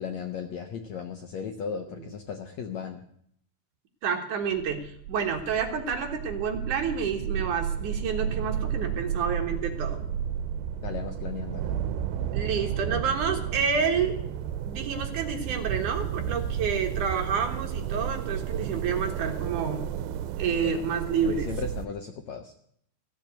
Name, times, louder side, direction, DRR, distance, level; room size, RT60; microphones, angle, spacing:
voice 1, 0.0-3.0 10.8-11.8 20.6-20.7 21.2-22.5, left 6 dB, 70° left, 5 dB, 1.7 m, -36 dB
voice 2, 4.0-10.1 12.3-14.2 14.6-19.9 20.4-21.5, right 6 dB, 65° right, 3 dB, 2.8 m, -29 dB
sound 1, 4.4-21.9, right 9 dB, 85° right, 2.5 m, -32 dB
15.5 x 7.5 x 8.1 m, 0.69 s
omnidirectional pair, 4.2 m